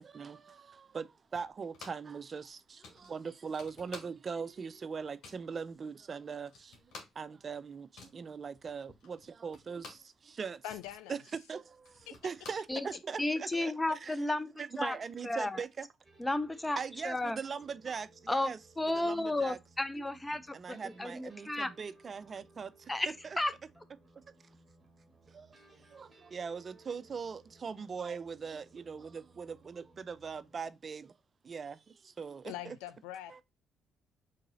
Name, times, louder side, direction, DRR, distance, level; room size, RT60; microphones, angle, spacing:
voice 1, 0.0-10.6 11.1-11.2 11.5-13.7 14.0-14.2 14.6-15.9 16.8-18.6 19.0-19.6 20.5-22.9 25.3-31.1 31.4-32.8 33.3-33.4, right 5 dB, 45° right, 0.4 m, -41 dB
sound 1, 1.3-2.2 2.4-2.5 2.8-4.5 4.8-5.5 6.0-6.1 6.3-10.2 10.5-13.2, left 4 dB, 70° left, 1.4 m, -53 dB
voice 2, 10.6-11.2 12.1-12.2 13.5-13.7 32.4-33.4, left 12 dB, 90° left, 0.4 m, -43 dB
voice 3, 13.2-14.5 14.8-15.0 15.2-15.6 16.2-16.8 17.0-17.4 18.3-21.7 22.9-23.1 23.4-23.5, left 2 dB, 15° left, 0.5 m, -33 dB
sound 2, 16.0-30.7, right 2 dB, 25° right, 1.4 m, -62 dB
3.8 x 2.7 x 3.8 m
supercardioid pair, 60°, 0 cm